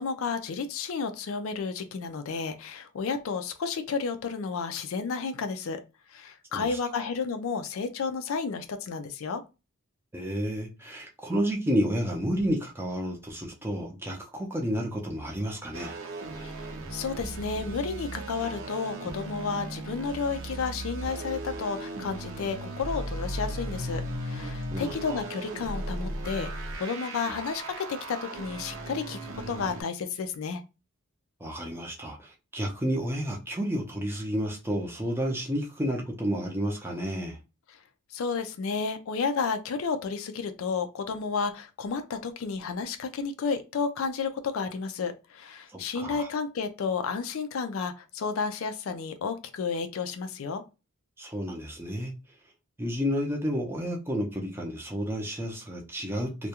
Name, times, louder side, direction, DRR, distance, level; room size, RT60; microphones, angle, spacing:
voice 1, 0.0-5.8 6.1-9.4 16.4-16.6 16.9-26.5 26.8-29.2 29.5-30.6 38.1-50.6, left 5 dB, 65° left, 0.4 m, -32 dB
voice 2, 6.5-7.0 10.1-15.9 24.7-25.2 31.4-37.4 45.7-46.3 51.2-52.1 52.8-56.5, equal, 10° right, 0.5 m, -31 dB
sound 1, 15.7-29.8, right 1 dB, 60° right, 0.6 m, -37 dB
2.3 x 2.2 x 2.8 m
head